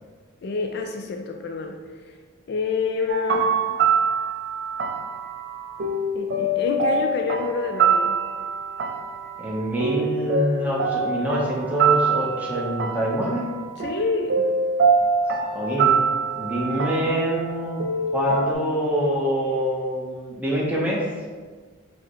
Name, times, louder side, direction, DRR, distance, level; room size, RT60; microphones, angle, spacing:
voice 1, 0.4-1.8 2.1-2.2 2.5-3.6 6.2-8.2 13.8-14.5, left 4 dB, 50° left, 3 dB, 0.3 m, -27 dB
sound 1, 3.1-18.5, right 4 dB, 55° right, 0.3 m, -24 dB
voice 2, 9.4-13.5 15.5-16.0 16.4-17.8 18.1-21.1, equal, 5° right, -4 dB, 0.7 m, -25 dB
4.7 x 2.1 x 4.5 m, 1.5 s
head